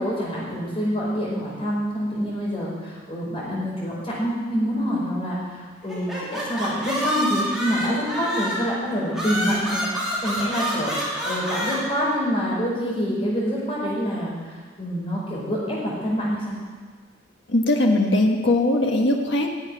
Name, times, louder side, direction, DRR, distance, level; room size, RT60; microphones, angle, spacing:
voice 1, 0.0-9.8 10.2-16.5, equal, 30° left, -6 dB, 5.0 m, -26 dB
sound 1, 5.9-8.7 9.1-11.8, equal, 5° right, 2.9 m, -27 dB
voice 2, 17.5-19.5, left 1 dB, 65° left, 2 dB, 1.6 m, -20 dB
11.5 x 7.4 x 9.8 m, 1.5 s
head